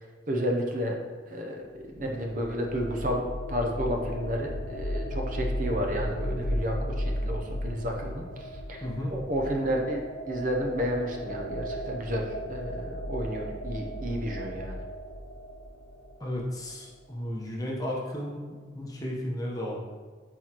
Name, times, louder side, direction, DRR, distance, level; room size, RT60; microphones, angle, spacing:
voice 1, 0.3-1.0 1.3-3.2 3.5-8.8 9.1-14.8, equal, 45° right, 1 dB, 0.6 m, -31 dB
sound 1, 1.7-16.5, equal, 90° left, 0.8 m, -35 dB
voice 2, 8.8-9.1 16.2-19.8, left 1 dB, 20° left, -3 dB, 0.9 m, -34 dB
7.9 x 4.4 x 2.9 m, 1.5 s
head